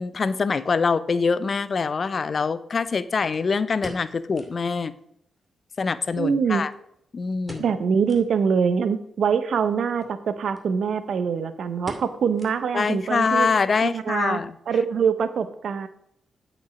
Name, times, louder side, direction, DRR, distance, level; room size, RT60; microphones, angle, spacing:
voice 1, 0.0-4.9 5.8-6.7 7.1-7.7 12.7-14.6, left 5 dB, 50° left, 15 dB, 0.6 m, -24 dB
sound 1, 3.3-4.7 5.0-5.1 5.4-5.5 6.1-7.0 7.4-8.3 8.8-8.9 9.9-10.2 10.5-10.7 11.0-11.3 11.9-12.9 13.2-13.3 13.9-14.2 14.5-14.6, equal, 10° right, 2.4 m, -42 dB
voice 2, 6.2-6.6 7.6-13.5 13.8-14.4 14.7-15.9, right 6 dB, 70° right, 12 dB, 0.8 m, -24 dB
8.3 x 5.4 x 6.1 m, 0.72 s
hypercardioid pair, 40°, 0 cm